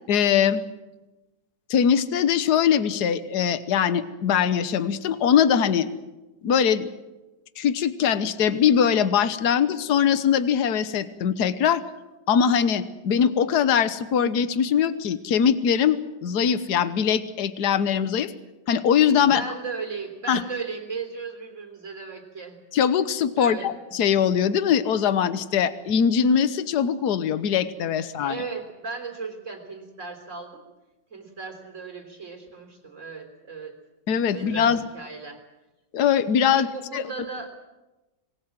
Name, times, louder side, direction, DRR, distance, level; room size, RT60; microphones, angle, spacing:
voice 1, 0.1-0.6 1.7-5.9 6.4-6.9 7.6-11.8 12.3-18.3 18.7-19.4 20.3-20.4 22.7-28.4 34.1-34.8 35.9-36.7 36.9-37.0, left 8 dB, 65° left, 13 dB, 1.6 m, -22 dB
voice 2, 19.2-22.6 23.4-23.7 28.0-30.6 31.1-33.8 34.3-35.4 36.5-37.5, right 4 dB, 40° right, 4 dB, 3.9 m, -36 dB
26.0 x 20.0 x 7.5 m, 1.0 s
omnidirectional pair, 1.9 m